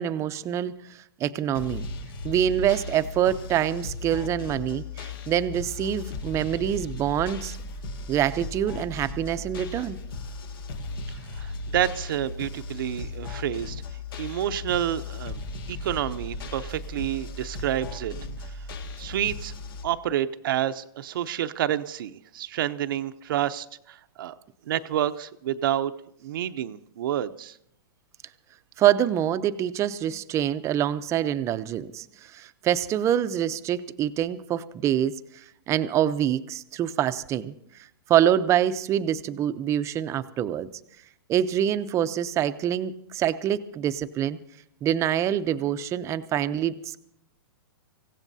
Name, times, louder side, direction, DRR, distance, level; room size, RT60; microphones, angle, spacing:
voice 1, 0.0-1.9 2.2-7.6 8.1-10.0 28.8-32.1 32.3-35.1 35.7-37.5 38.1-40.7 41.3-44.4 44.8-47.0, right 10 dB, 25° right, 13 dB, 0.7 m, -25 dB
sound 1, 1.5-19.8, left 3 dB, 65° left, 1.9 m, -36 dB
voice 2, 11.3-13.8 14.2-15.4 15.7-18.1 19.0-19.5 19.8-24.3 24.7-25.9 26.2-27.6, right 11 dB, 60° right, 9 dB, 0.7 m, -29 dB
25.0 x 16.5 x 2.7 m, 0.75 s
hypercardioid pair, 135°, 13 cm